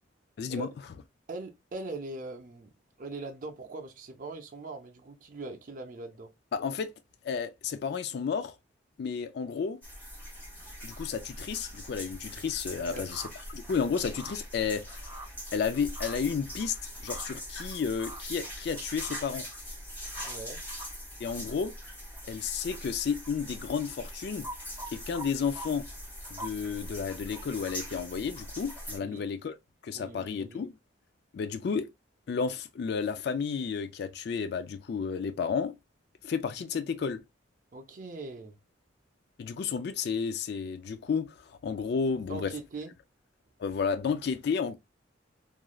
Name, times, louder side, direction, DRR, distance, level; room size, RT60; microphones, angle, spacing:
voice 1, 0.4-0.7 6.5-6.9 7.2-8.5 9.0-9.8 10.8-13.2 13.5-15.1 15.5-16.8 17.0-19.5 21.2-21.7 22.3-24.5 24.9-25.9 26.3-29.5 29.8-30.7 31.3-31.9 32.3-35.7 36.2-37.2 39.4-42.5 43.6-44.7, left 6 dB, 55° left, 0.3 m, -32 dB
voice 2, 1.3-2.7 3.0-6.3 12.8-13.1 20.2-20.6 29.0-29.2 29.9-30.6 36.6-36.7 37.7-38.6 42.3-42.9, right 3 dB, 45° right, 0.5 m, -41 dB
sound 1, 9.8-29.0, equal, 10° left, 1.4 m, -42 dB
sound 2, 13.1-13.3 14.2-14.4 15.1-15.3 16.0-16.2 17.1-17.3 18.0-18.2 19.0-19.2 24.4-25.3 25.6-25.7 26.4-26.5 27.3-27.4, right 1 dB, 15° right, 1.2 m, -41 dB
3.0 x 2.4 x 2.3 m
head